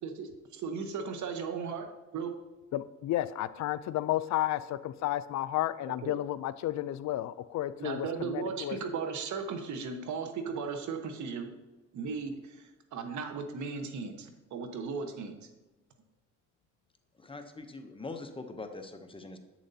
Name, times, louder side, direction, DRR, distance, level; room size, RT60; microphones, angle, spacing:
voice 1, 0.0-1.9 2.1-2.4 6.0-6.1 7.8-11.5 11.9-15.4, right 5 dB, 70° right, 6 dB, 1.1 m, -36 dB
voice 2, 2.7-8.8, left 14 dB, 65° left, 15 dB, 0.4 m, -32 dB
voice 3, 17.2-19.4, left 3 dB, 20° left, 6 dB, 0.8 m, -43 dB
7.9 x 7.1 x 2.8 m, 1.1 s
cardioid pair, 90°, 30 cm